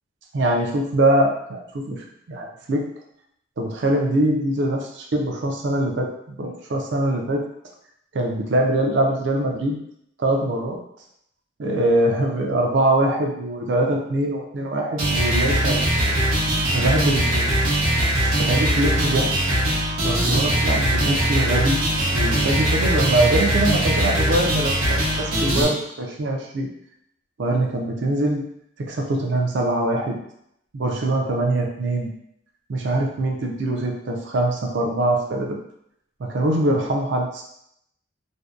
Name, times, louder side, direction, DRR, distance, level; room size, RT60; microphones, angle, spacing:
voice 1, 0.3-2.9 3.6-6.1 6.4-7.4 8.1-9.8 10.2-10.8 11.6-15.8 16.7-17.6 18.4-19.3 20.0-21.8 22.1-26.7 27.4-28.4 28.8-30.2 30.7-32.1 32.7-35.6 36.2-37.4, right 1 dB, 60° right, 1 dB, 0.4 m, -23 dB
sound 1, 15.0-25.6, right 1 dB, 75° right, 0.8 m, -21 dB
2.6 x 2.1 x 2.3 m, 0.75 s
head